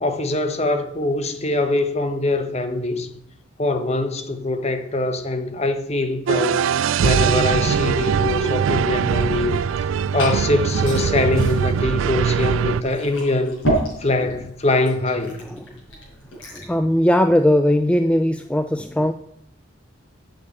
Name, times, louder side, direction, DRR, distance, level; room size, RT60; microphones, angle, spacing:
voice 1, 0.0-3.1 3.6-6.6 7.0-9.5 10.1-13.6 14.0-15.4, left 2 dB, 35° left, 1.1 m, -23 dB
sound 1, 6.3-12.8, right 7 dB, 80° right, 0.3 m, -21 dB
Liquid, 9.7-16.8, right 1 dB, 75° left, 5.2 m, -31 dB
voice 2, 16.5-19.1, equal, 5° left, 0.3 m, -19 dB
8.5 x 6.6 x 8.5 m
head